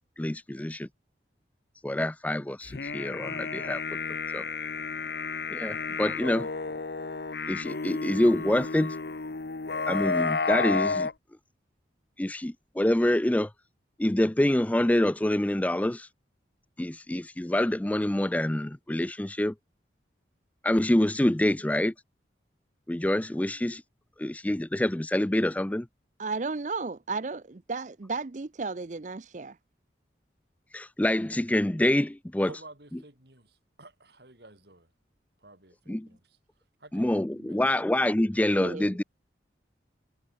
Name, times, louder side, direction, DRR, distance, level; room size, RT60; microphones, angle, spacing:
voice 1, 0.2-0.9 1.8-3.8 4.3-4.4 5.5-6.5 7.5-9.0 9.9-11.1 12.2-13.5 14.0-16.1 16.8-19.5 20.6-21.9 22.9-23.8 24.2-25.9 30.7-32.5 35.9-36.1 36.9-39.0, left 1 dB, 10° left, 0.4 m, -26 dB
sound 1, 2.7-11.1, left 4 dB, 60° left, 0.9 m, -32 dB
voice 2, 26.2-29.6 35.9-36.0 38.6-39.0, right 4 dB, 40° right, 0.6 m, -34 dB
voice 3, 32.4-34.9 35.4-36.4 36.8-37.8, right 2 dB, 60° right, 4.5 m, -51 dB
head